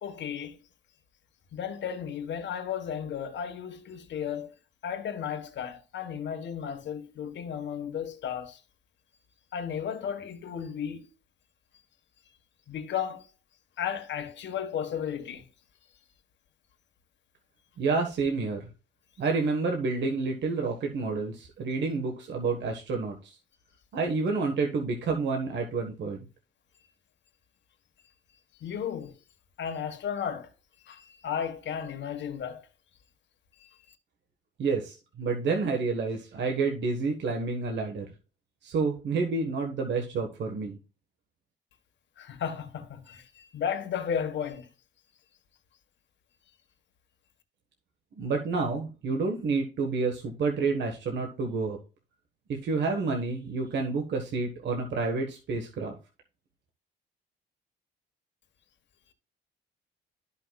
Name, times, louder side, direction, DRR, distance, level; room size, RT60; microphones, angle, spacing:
voice 1, 0.0-0.6 1.5-4.5 4.8-8.6 9.5-11.1 12.7-13.3 13.8-15.5 28.6-29.2 29.6-30.5 30.8-32.7 33.6-34.0 42.2-44.7, left 8 dB, 65° left, 1.4 m, -34 dB
voice 2, 17.8-18.7 19.2-23.4 23.9-26.2 34.6-38.1 38.6-40.8 48.2-51.8 52.5-55.9, right 4 dB, 65° right, 1.4 m, -29 dB
13.0 x 5.5 x 2.3 m
cardioid pair, 90°, 20 cm